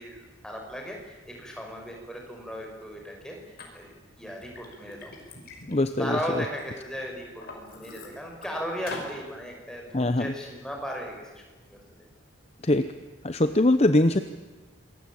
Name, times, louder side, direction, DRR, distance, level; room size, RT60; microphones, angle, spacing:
voice 1, 0.0-5.1 6.0-11.4 11.7-12.1, equal, 5° left, 1 dB, 5.8 m, -37 dB
Liquid, 3.6-3.7 4.2-6.6 7.1-8.5 8.9-9.1, left 2 dB, 45° left, 5.6 m, -43 dB
voice 2, 5.7-6.4 9.9-10.3 12.6-12.9 13.2-14.2, left 1 dB, 30° left, 10 dB, 0.8 m, -22 dB
27.5 x 22.0 x 8.8 m, 1.2 s
head